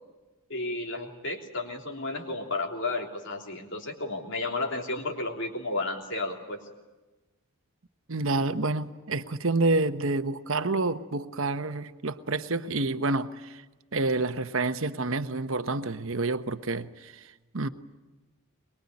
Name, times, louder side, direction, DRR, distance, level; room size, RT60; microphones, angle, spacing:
voice 1, 0.5-6.6, left 2 dB, 55° left, 3.3 m, -32 dB
voice 2, 8.1-13.6 13.9-17.7, right 3 dB, 60° right, 1.0 m, -28 dB
23.5 x 22.0 x 9.7 m
head